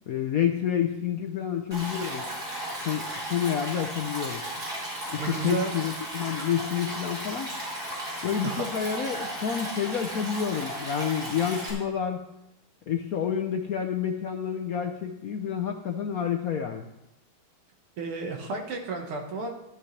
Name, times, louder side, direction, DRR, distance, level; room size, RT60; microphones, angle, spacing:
voice 1, 0.1-2.2 2.8-4.4 5.1-7.5 8.2-12.3 12.9-16.9, left 8 dB, 65° left, 3 dB, 0.9 m, -29 dB
Stream, 1.7-11.7, equal, 45° right, 4.8 m, -35 dB
voice 2, 5.2-5.8 8.4-8.6 18.0-19.5, right 4 dB, 85° right, 2 dB, 2.4 m, -32 dB
13.0 x 12.0 x 3.3 m, 0.88 s
omnidirectional pair, 2.3 m